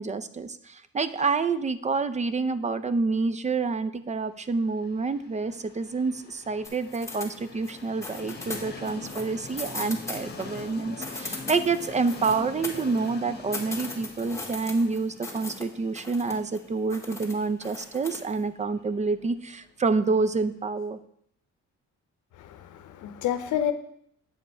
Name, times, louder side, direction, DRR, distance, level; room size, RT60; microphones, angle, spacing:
voice 1, 0.0-21.0, right 4 dB, 25° right, 14 dB, 0.5 m, -28 dB
Train, 4.6-20.5, left 3 dB, 35° left, 1.3 m, -44 dB
sound 1, 6.6-7.8 8.0-10.6 10.9-13.1 13.5-15.6 16.0-16.6 16.9-18.3, left 2 dB, 10° left, 1.7 m, -38 dB
voice 2, 22.4-23.7, left 10 dB, 80° left, 9 dB, 0.7 m, -29 dB
8.6 x 5.2 x 4.4 m, 0.69 s
cardioid pair, 90°, 30 cm